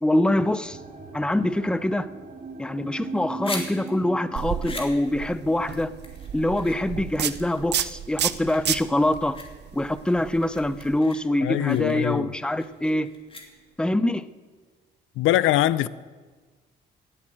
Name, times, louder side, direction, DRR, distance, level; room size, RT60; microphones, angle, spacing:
voice 1, 0.0-0.8 1.1-2.1 2.6-5.9 6.3-9.4 9.7-13.1 13.8-14.3, left 1 dB, 5° left, 0.6 m, -24 dB
sound 1, 0.6-11.8 12.1-12.7 13.3-13.4, right 3 dB, 45° right, 2.4 m, -42 dB
sound 2, 3.0-13.9, left 2 dB, 25° left, 2.7 m, -42 dB
sound 3, 4.4-11.0, right 10 dB, 60° right, 0.7 m, -32 dB
voice 2, 11.4-12.3 15.2-15.9, left 14 dB, 90° left, 0.5 m, -22 dB
16.5 x 8.5 x 7.6 m
cardioid pair, 90°, 20 cm